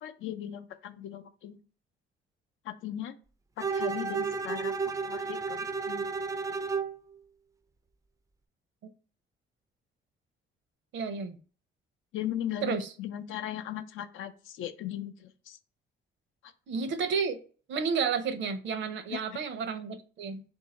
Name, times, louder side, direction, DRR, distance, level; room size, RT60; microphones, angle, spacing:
voice 1, 0.0-1.6 2.6-3.1 3.6-6.1 12.1-15.6 19.1-19.2, left 11 dB, 85° left, 0.5 m, -38 dB
Bowed string instrument, 3.6-7.0, right 5 dB, 15° right, 0.3 m, -32 dB
voice 2, 10.9-11.4 12.6-12.9 16.7-17.4 17.7-20.4, right 5 dB, 70° right, 0.7 m, -31 dB
3.7 x 2.6 x 4.1 m
cardioid pair, 90°, 20 cm